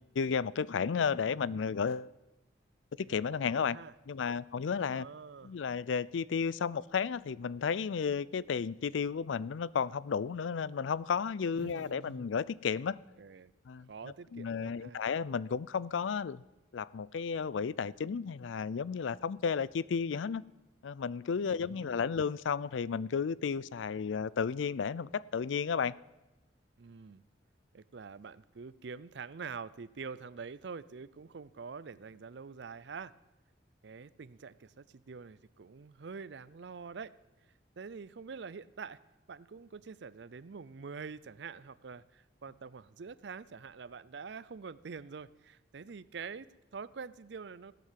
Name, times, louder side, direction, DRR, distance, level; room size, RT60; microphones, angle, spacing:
voice 1, 0.0-2.1 3.1-3.8 4.1-5.1 5.4-13.0 13.7-13.9 14.3-16.4 16.7-20.4 20.8-26.0, left 6 dB, 80° left, 0.4 m, -33 dB
voice 2, 3.0-3.9 4.9-5.6 11.5-12.2 13.2-13.5 13.9-15.0 21.5-22.1 26.8-27.2 27.7-33.1 33.8-37.1 37.8-39.0 39.3-47.7, right 5 dB, 65° right, 0.5 m, -46 dB
16.0 x 9.3 x 7.5 m
head